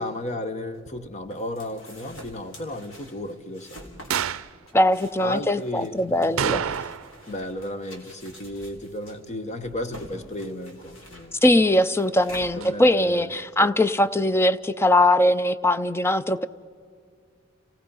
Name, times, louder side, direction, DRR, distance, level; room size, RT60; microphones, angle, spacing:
voice 1, 0.0-3.8 5.2-6.3 7.3-11.4 12.5-13.3 13.6-13.7, left 1 dB, 35° left, 10 dB, 1.0 m, -34 dB
sound 1, 0.7-13.2, equal, 70° left, 3.7 m, -47 dB
sound 2, 4.1-4.5 6.4-7.2 7.5-7.6 12.6-12.7, right 8 dB, 75° right, 0.5 m, -27 dB
voice 2, 4.7-6.7 11.4-16.5, left 1 dB, 10° left, 13 dB, 0.4 m, -21 dB
29.5 x 18.0 x 5.5 m, 2.3 s
head